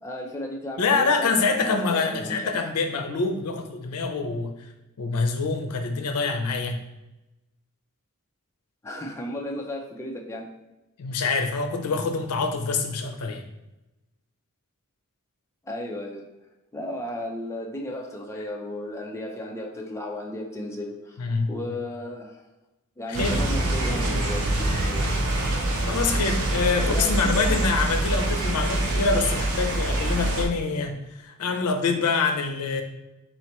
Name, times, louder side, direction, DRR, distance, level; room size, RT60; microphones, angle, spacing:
voice 1, 0.0-2.7 8.8-10.5 15.6-16.3 16.7-22.4 23.0-25.2 26.8-27.7, left 1 dB, 10° left, 0 dB, 0.4 m, -34 dB
voice 2, 0.8-4.5 5.0-6.8 11.0-13.4 21.2-21.5 23.1-23.4 25.9-32.8, left 4 dB, 85° left, 6 dB, 0.5 m, -25 dB
sound 1, 23.1-30.5, right 1 dB, 65° right, 0.6 m, -25 dB
4.1 x 3.1 x 2.9 m, 0.96 s
head